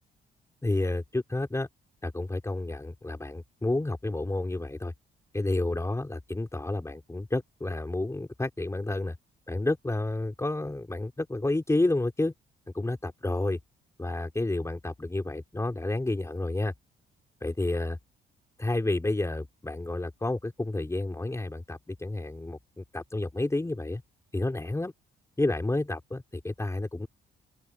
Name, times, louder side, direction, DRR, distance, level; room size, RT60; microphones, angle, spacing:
voice 1, 0.6-1.7 2.0-4.9 5.3-9.2 9.5-12.3 12.7-13.6 14.0-16.7 17.4-18.0 18.6-24.0 24.3-24.9 25.4-27.1, left 2 dB, 15° left, 4.2 m, -30 dB
open air
cardioid pair, 90°, 20 cm